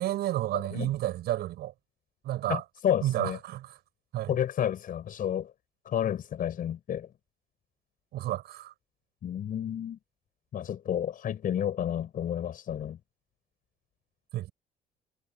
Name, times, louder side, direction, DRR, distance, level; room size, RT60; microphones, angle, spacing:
voice 1, 0.0-1.7 2.2-2.6 3.0-3.8 4.1-4.3 8.1-8.7 14.3-14.5, right 14 dB, 75° right, 7.1 m, -31 dB
voice 2, 2.5-3.4 4.3-5.5 5.9-7.1 9.2-10.0 10.5-13.0, left 10 dB, 55° left, 6.5 m, -30 dB
cardioid pair, 110°, 17 cm